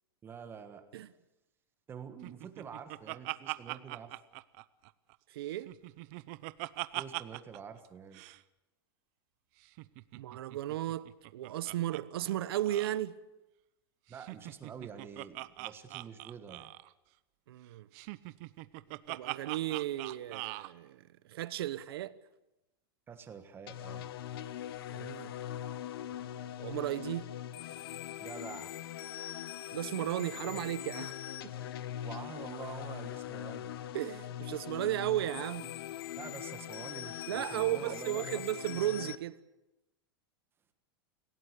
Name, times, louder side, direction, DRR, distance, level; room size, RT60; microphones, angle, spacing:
voice 1, 0.2-0.9 1.9-4.2 6.9-8.2 14.1-16.7 23.1-24.1 28.2-28.7 32.0-33.7 36.2-38.5, right 7 dB, 20° right, 1.5 m, -47 dB
Laughter, 2.2-5.2 5.5-7.6 7.8-7.9 8.1-8.4 9.6-12.0 12.3-12.4 12.7-13.0 14.1-16.9 17.9-20.7, right 21 dB, 45° right, 0.8 m, -42 dB
voice 2, 5.3-5.7 10.1-13.2 17.5-17.9 19.1-22.2 24.9-25.3 26.6-27.3 29.7-31.2 31.4-31.5 33.9-35.7 37.3-39.4, right 13 dB, 80° right, 1.2 m, -35 dB
sound 1, 23.7-39.2, left 11 dB, 75° left, 1.2 m, -41 dB
26.5 x 17.0 x 8.4 m
supercardioid pair, 160°, 13 cm